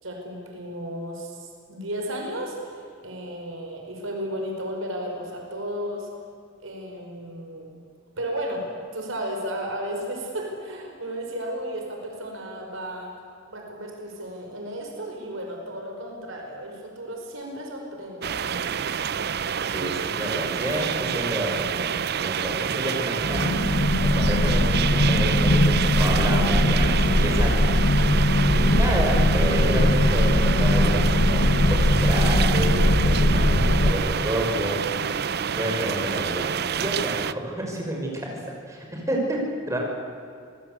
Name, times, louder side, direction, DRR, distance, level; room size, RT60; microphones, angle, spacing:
voice 1, 0.0-6.1 6.6-7.8 8.2-13.1 13.5-18.3, right 1 dB, 90° right, 1 dB, 5.2 m, -34 dB
sound 1, 18.2-37.3, right 7 dB, 55° right, 0.6 m, -28 dB
voice 2, 19.6-23.5 24.0-27.7 28.5-34.8 35.5-38.4 38.7-39.4 39.7-39.8, right 1 dB, 15° right, 0 dB, 5.7 m, -29 dB
sound 2, 23.2-33.9, left 1 dB, 80° left, 2.0 m, -20 dB
26.0 x 19.0 x 8.2 m, 2.4 s
head